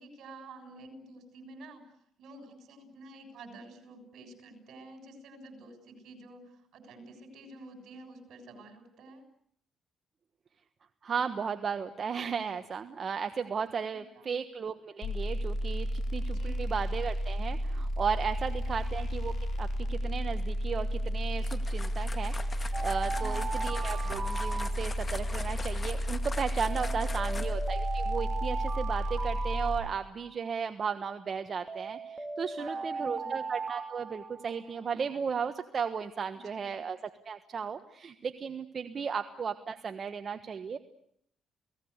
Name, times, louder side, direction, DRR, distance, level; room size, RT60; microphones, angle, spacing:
voice 1, 0.0-1.8 2.2-9.2 14.1-14.4 16.3-16.7 23.2-23.6 26.8-27.5 32.5-33.4 36.3-36.8, right 2 dB, 70° right, 7 dB, 6.9 m, -50 dB
voice 2, 11.0-40.8, right 6 dB, 45° right, 8 dB, 1.4 m, -35 dB
sound 1, 15.0-29.8, equal, 65° left, 4.4 m, -32 dB
sound 2, 21.4-27.7, left 3 dB, 30° left, 1.9 m, -43 dB
Alarm, 22.7-25.3 26.7-30.3 31.7-34.9, right 4 dB, 20° right, 2.1 m, -38 dB
30.0 x 18.5 x 8.2 m, 0.69 s
cardioid pair, 90°, 0 cm